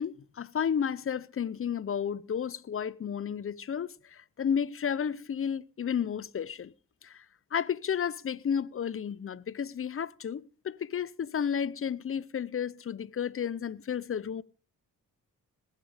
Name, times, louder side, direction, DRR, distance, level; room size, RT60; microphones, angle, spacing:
voice 1, 0.0-6.7 7.0-7.2 7.5-14.4, left 8 dB, 40° left, 0.7 m, -32 dB
19.0 x 9.1 x 5.0 m
cardioid pair, 75°, 33 cm